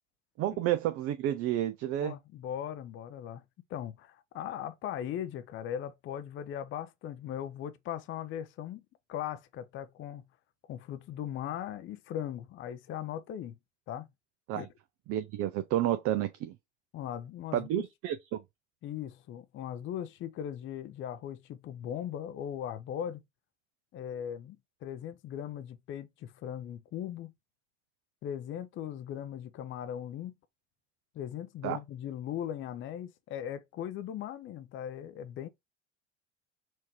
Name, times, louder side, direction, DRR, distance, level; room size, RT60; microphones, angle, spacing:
voice 1, 0.4-2.1 14.5-14.7 15.1-16.5 17.5-18.4 31.6-31.8, right 12 dB, 45° right, 0.5 m, -30 dB
voice 2, 2.0-3.4 3.7-8.8 9.1-10.2 10.7-13.6 13.9-14.1 14.5-14.7 16.9-17.8 18.8-23.2 23.9-27.3 28.2-30.3 31.1-35.5, left 10 dB, 35° left, 0.6 m, -39 dB
4.4 x 2.7 x 2.9 m
hypercardioid pair, 75°, 34 cm